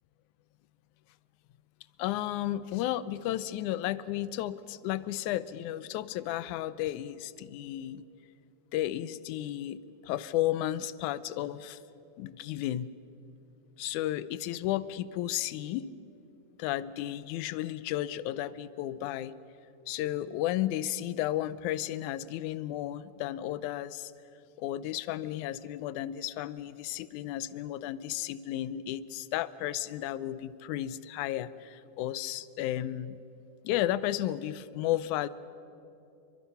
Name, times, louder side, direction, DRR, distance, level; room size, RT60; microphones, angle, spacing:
voice 1, 2.0-8.0 8.7-11.8 12.2-12.9 13.8-15.9 16.6-19.4 19.9-24.1 24.6-33.2 33.6-35.3, left 13 dB, 80° left, 16 dB, 2.1 m, -33 dB
28.5 x 23.5 x 5.7 m, 2.7 s
omnidirectional pair, 3.5 m